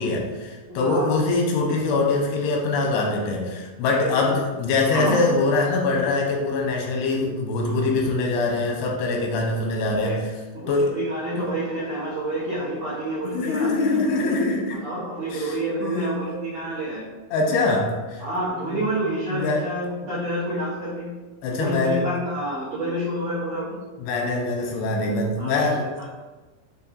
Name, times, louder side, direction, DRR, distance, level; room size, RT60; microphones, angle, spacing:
voice 1, 0.0-10.3 10.7-11.0 11.4-11.5 13.2-14.8 15.3-16.4 17.3-18.2 18.6-18.8 19.3-19.7 21.4-22.0 24.0-25.9, left 3 dB, 90° left, 0 dB, 2.8 m, -23 dB
voice 2, 0.7-1.1 3.9-4.3 4.9-5.2 5.9-6.0 7.6-7.9 10.0-10.2 10.5-13.9 14.8-17.0 18.2-21.1 21.5-23.7 25.4-26.1, right 1 dB, 85° right, -9 dB, 1.4 m, -29 dB
6.8 x 2.8 x 2.4 m, 1.2 s
omnidirectional pair, 4.5 m